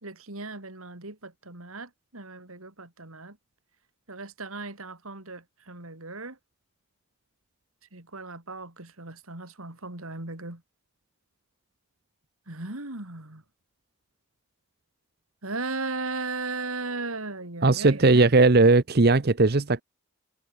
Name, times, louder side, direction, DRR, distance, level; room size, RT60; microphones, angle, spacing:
voice 1, 0.0-3.4 4.1-6.4 7.9-10.6 12.5-13.4 15.4-18.3, right 3 dB, 75° right, 3.6 m, -37 dB
voice 2, 17.6-19.8, right 3 dB, 45° right, 0.8 m, -18 dB
head